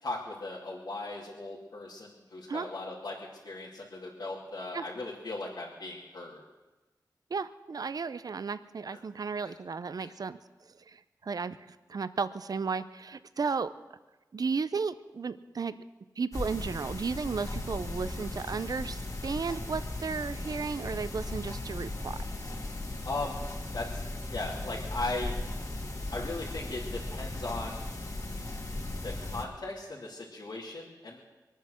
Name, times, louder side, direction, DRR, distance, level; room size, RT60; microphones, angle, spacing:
voice 1, 0.0-3.2 3.4-6.4 8.9-9.0 9.4-9.5 10.0-10.1 23.0-23.4 23.7-25.3 26.1-27.9 29.0-31.2, left 2 dB, 70° left, -6 dB, 2.5 m, -38 dB
voice 2, 7.3-10.4 10.9-13.7 14.3-15.7 16.2-22.2, right 5 dB, 60° right, 14 dB, 0.6 m, -34 dB
sound 1, 16.3-29.4, left 2 dB, 50° left, 2.8 m, -37 dB
24.0 x 9.1 x 6.4 m, 1.2 s
wide cardioid pair, 105°, 7 cm